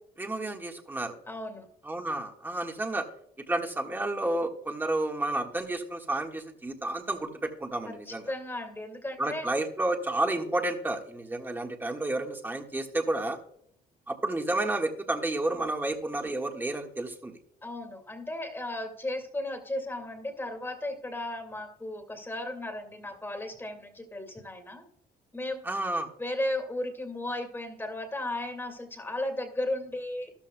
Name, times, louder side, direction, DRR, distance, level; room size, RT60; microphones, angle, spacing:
voice 1, 0.2-1.2 1.8-3.0 3.5-8.2 9.2-13.4 14.1-17.4 25.6-26.1, right 2 dB, 10° right, 3 dB, 1.5 m, -31 dB
voice 2, 1.3-1.7 7.9-9.4 17.6-24.8 25.3-25.6 26.2-30.3, left 1 dB, 15° left, 5 dB, 2.1 m, -35 dB
13.0 x 12.5 x 2.2 m, 0.69 s
cardioid pair, 110°, 17 cm